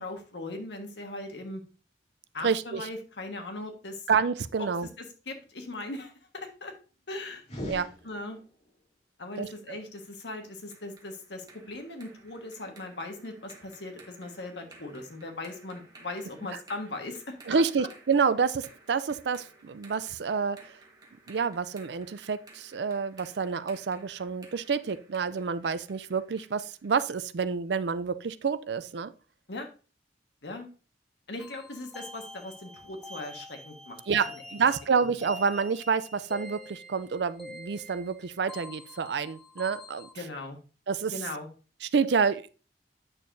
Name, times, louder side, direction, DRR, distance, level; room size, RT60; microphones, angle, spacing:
voice 1, 0.0-1.6 2.3-4.1 4.6-4.7 5.0-6.7 7.1-7.4 8.0-8.4 9.2-17.9 29.5-29.7 30.4-30.7 31.3-34.0 34.6-34.7 40.1-40.6 41.1-41.5, left 2 dB, 80° left, 1.5 m, -39 dB
voice 2, 2.4-2.9 4.1-4.9 7.7-7.9 9.4-9.8 17.5-20.7 21.3-29.1 34.1-40.1 40.9-41.1 41.8-42.5, right 5 dB, 75° right, 0.5 m, -28 dB
sound 1, 7.4-8.7, equal, 40° left, 2.5 m, -40 dB
sound 2, 9.5-27.3, right 2 dB, 20° right, 1.4 m, -56 dB
sound 3, 31.4-40.1, left 1 dB, ahead, 0.5 m, -46 dB
8.7 x 6.5 x 2.6 m
head